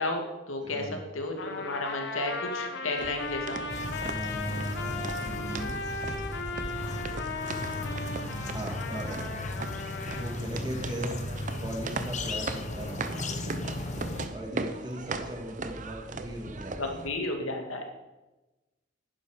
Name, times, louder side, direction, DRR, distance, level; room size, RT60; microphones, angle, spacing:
voice 1, 0.0-3.6 16.8-17.8, left 2 dB, 85° left, 3 dB, 2.1 m, -33 dB
voice 2, 0.6-1.0 4.0-5.8 8.5-9.4 10.2-11.2 11.6-13.2 14.3-17.0, right 1 dB, 20° right, 1 dB, 2.1 m, -38 dB
Trumpet, 1.4-10.4, left 3 dB, 55° left, 1.1 m, -37 dB
sound 1, 3.0-17.1, right 3 dB, 40° right, 0.8 m, -39 dB
sound 2, 3.7-14.3, left 2 dB, 35° left, 1.0 m, -36 dB
11.5 x 9.9 x 5.0 m, 1.1 s
head